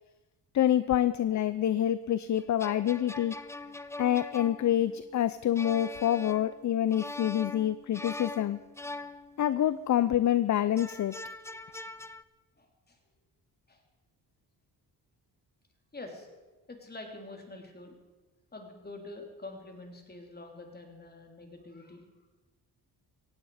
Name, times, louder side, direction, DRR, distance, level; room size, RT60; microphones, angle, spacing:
voice 1, 0.5-3.3 4.0-8.6 9.4-11.2, left 11 dB, 45° left, 15 dB, 0.6 m, -27 dB
sound 1, 2.4-9.8 10.8-12.2, left 2 dB, 5° left, 0.6 m, -43 dB
voice 2, 12.6-13.0 13.7-13.8 15.9-16.4 16.7-18.0 18.5-22.0, left 2 dB, 25° left, 2 dB, 3.4 m, -46 dB
17.5 x 16.0 x 5.0 m, 1.2 s
cardioid pair, 100°, 40 cm